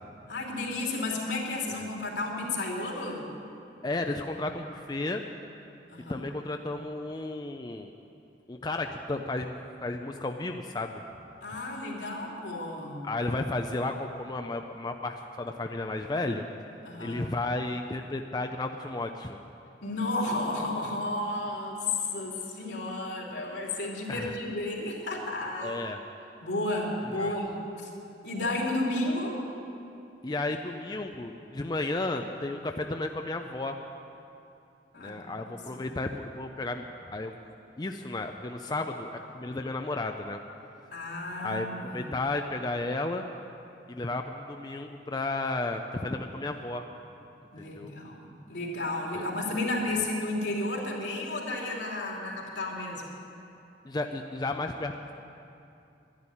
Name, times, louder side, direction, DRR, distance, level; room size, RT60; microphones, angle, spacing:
voice 1, 0.3-3.3 5.9-6.2 11.4-13.0 16.8-17.2 19.8-25.8 26.4-27.9 28.2-29.4 34.9-35.8 40.9-42.1 47.5-53.0, left 2 dB, 75° left, -2 dB, 2.9 m, -32 dB
voice 2, 3.8-5.2 6.1-7.9 8.5-9.5 9.8-11.0 13.0-16.4 17.0-19.4 24.1-24.4 25.6-26.0 27.2-27.3 30.2-33.8 35.0-36.8 37.1-37.4 37.8-40.4 41.4-43.2 43.9-46.8 47.6-47.9 49.1-49.2 53.8-54.9, left 2 dB, 20° left, 5 dB, 0.4 m, -33 dB
11.5 x 11.5 x 9.8 m, 2.7 s
head